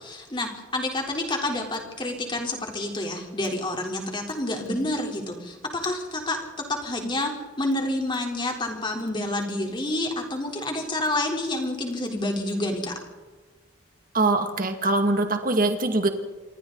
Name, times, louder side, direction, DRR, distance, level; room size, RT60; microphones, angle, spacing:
voice 1, 0.0-6.4 6.7-12.9, left 1 dB, 25° left, 1 dB, 3.8 m, -28 dB
voice 2, 14.1-16.1, right 2 dB, 45° right, 6 dB, 2.2 m, -23 dB
27.5 x 24.0 x 4.0 m, 1.3 s
head